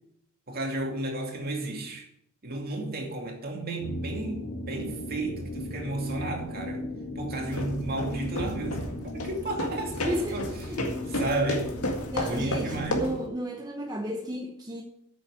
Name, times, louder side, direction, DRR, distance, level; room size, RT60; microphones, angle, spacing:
voice 1, 0.5-2.1 2.4-6.8 7.2-10.5 11.1-11.7 12.2-13.2, right 2 dB, 45° right, 2.4 m, -33 dB
sound 1, 3.8-12.8, equal, 45° left, 2.3 m, -37 dB
sound 2, 7.3-13.2, left 1 dB, 85° left, 2.0 m, -33 dB
voice 2, 9.9-10.8 12.1-14.8, equal, 20° right, 1.0 m, -33 dB
8.8 x 7.0 x 8.4 m
head